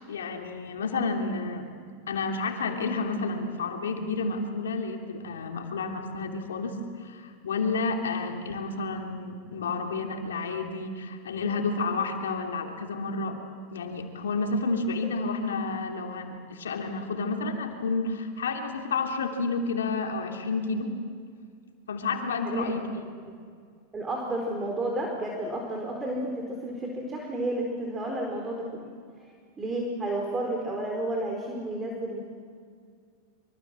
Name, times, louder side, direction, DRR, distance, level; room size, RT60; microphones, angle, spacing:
voice 1, 0.1-1.7 2.1-13.4 13.7-21.0 21.9-22.8, left 3 dB, 85° left, 3 dB, 3.0 m, -30 dB
voice 2, 22.4-23.0 23.9-28.9 29.6-32.2, right 1 dB, 20° right, 1 dB, 4.2 m, -31 dB
25.5 x 24.5 x 7.6 m, 2.1 s
hypercardioid pair, 100°, 0 cm